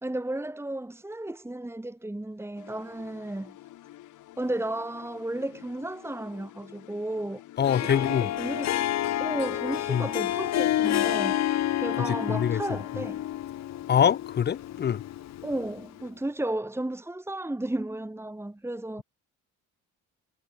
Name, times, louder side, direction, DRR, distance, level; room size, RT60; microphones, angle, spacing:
voice 1, 0.0-3.6 4.4-7.4 7.8-8.9 9.2-11.4 11.8-13.2 15.4-19.0, right 1 dB, 10° right, 2.0 m, -33 dB
sound 1, 2.6-16.1, left 14 dB, 85° left, 4.3 m, -50 dB
Harp, 7.6-15.8, left 12 dB, 60° left, 0.9 m, -29 dB
voice 2, 7.6-8.3 9.9-10.1 12.0-12.6 13.9-15.0, left 8 dB, 35° left, 0.5 m, -24 dB
cardioid pair, 90°, 30 cm